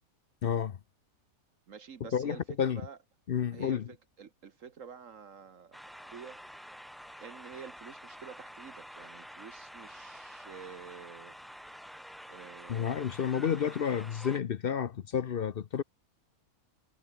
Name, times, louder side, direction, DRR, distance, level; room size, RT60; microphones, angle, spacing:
voice 1, 0.4-0.8 2.1-2.8 3.3-3.9 12.7-15.8, left 8 dB, 55° left, 0.7 m, -30 dB
voice 2, 1.7-2.4 2.7-3.0 3.5-6.4 7.2-11.4 12.3-13.2, right 6 dB, 60° right, 1.5 m, -49 dB
sound 1, 5.7-14.4, equal, ahead, 0.8 m, -48 dB
omnidirectional pair, 1.5 m